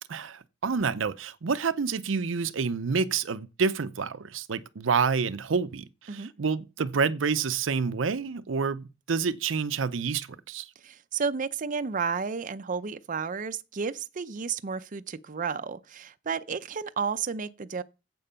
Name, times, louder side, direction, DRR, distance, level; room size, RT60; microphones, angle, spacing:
voice 1, 0.1-10.7, right 5 dB, 85° right, 0.6 m, -28 dB
voice 2, 10.8-17.8, right 5 dB, 45° right, 0.5 m, -32 dB
8.9 x 7.7 x 5.6 m
head